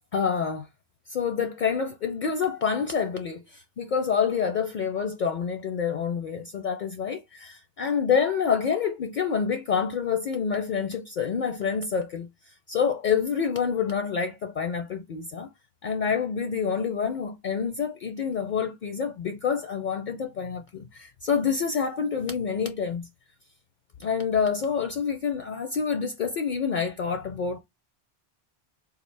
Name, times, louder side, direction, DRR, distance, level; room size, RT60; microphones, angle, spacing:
voice 1, 0.1-0.7 1.1-12.3 12.7-15.5 15.8-23.1 24.0-27.6, left 6 dB, 60° left, 0.5 m, -27 dB
3.7 x 2.4 x 3.2 m
omnidirectional pair, 1.1 m